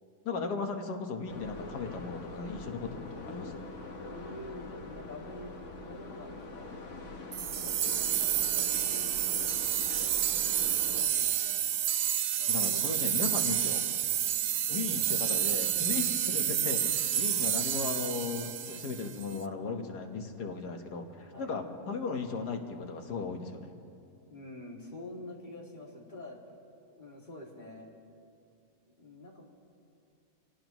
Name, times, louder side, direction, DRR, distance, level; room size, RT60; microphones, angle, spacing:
voice 1, 0.3-3.6 12.5-13.9 14.7-23.7, left 4 dB, 80° left, 4 dB, 1.8 m, -36 dB
sound 1, 1.3-11.1, left 2 dB, 50° left, 1.4 m, -44 dB
voice 2, 4.0-5.5 5.8-6.9 7.6-9.5 10.0-11.7 12.3-12.8 14.6-15.3 16.0-16.1 21.3-21.5 24.3-26.4 26.9-27.9 28.9-29.5, left 1 dB, 30° left, -3 dB, 2.5 m, -47 dB
sound 2, 7.3-19.3, right 10 dB, 75° right, 0.6 m, -29 dB
26.5 x 17.5 x 3.1 m, 2.4 s
omnidirectional pair, 1.7 m